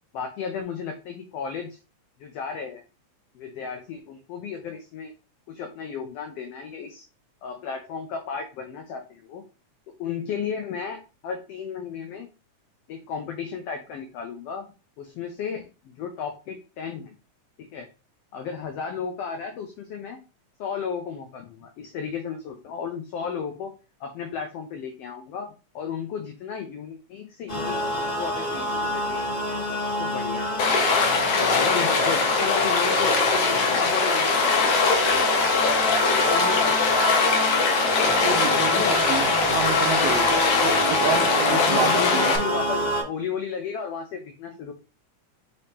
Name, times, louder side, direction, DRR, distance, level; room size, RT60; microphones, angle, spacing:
voice 1, 0.1-1.8 2.2-2.8 3.3-5.1 5.5-7.1 7.4-9.4 10.0-12.3 12.9-14.7 15.0-17.1 17.7-17.9 18.3-20.2 20.6-23.7 24.0-29.7 30.0-30.5 31.4-37.0 38.6-39.0 41.5-44.7, left 6 dB, 85° left, 4 dB, 1.3 m, -34 dB
sound 1, 27.5-43.0, equal, 25° left, 1.1 m, -27 dB
Stream, 30.6-42.4, left 4 dB, 70° left, 1.5 m, -22 dB
voice 2, 38.2-38.7 39.0-42.4, right 8 dB, 85° right, 4 dB, 1.4 m, -29 dB
5.1 x 2.9 x 3.4 m, 0.33 s
omnidirectional pair, 3.5 m